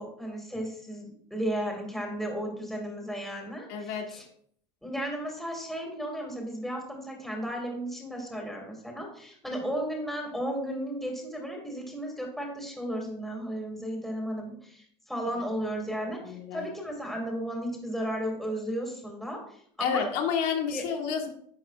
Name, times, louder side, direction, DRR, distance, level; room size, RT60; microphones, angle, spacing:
voice 1, 0.0-4.3 4.8-20.1 20.7-20.8, equal, ahead, 0 dB, 2.2 m, -34 dB
voice 2, 3.7-4.1 16.3-16.6 19.8-21.3, left 7 dB, 65° left, 3 dB, 1.4 m, -29 dB
11.0 x 8.7 x 2.4 m, 0.63 s
cardioid pair, 160°, 16 cm